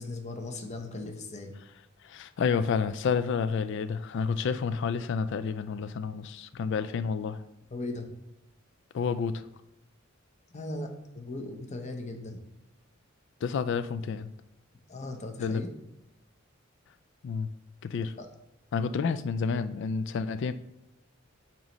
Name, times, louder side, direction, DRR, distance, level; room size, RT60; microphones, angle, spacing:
voice 1, 0.0-1.5 7.7-8.1 10.5-12.4 14.9-15.7 18.2-18.3, left 2 dB, 35° left, 4 dB, 0.9 m, -38 dB
voice 2, 2.0-7.4 8.9-9.4 13.4-14.3 15.4-15.6 17.2-17.5 17.8-18.1 18.7-20.5, left 5 dB, 60° left, 12 dB, 0.3 m, -29 dB
7.5 x 3.1 x 5.2 m, 0.91 s
head